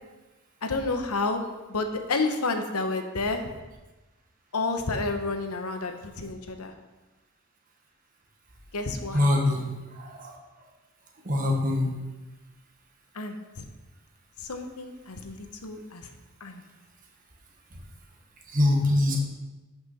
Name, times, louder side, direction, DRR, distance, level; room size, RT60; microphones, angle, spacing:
voice 1, 0.6-1.4 1.7-3.4 4.5-6.7 8.7-9.3 13.1-13.6 14.4-16.1 16.4-16.6, left 3 dB, 90° left, 6 dB, 1.0 m, -30 dB
voice 2, 9.1-9.7 9.9-10.4 11.2-11.9 18.5-19.2, left 1 dB, 40° right, 0 dB, 1.6 m, -23 dB
11.0 x 6.0 x 4.2 m, 1.1 s
head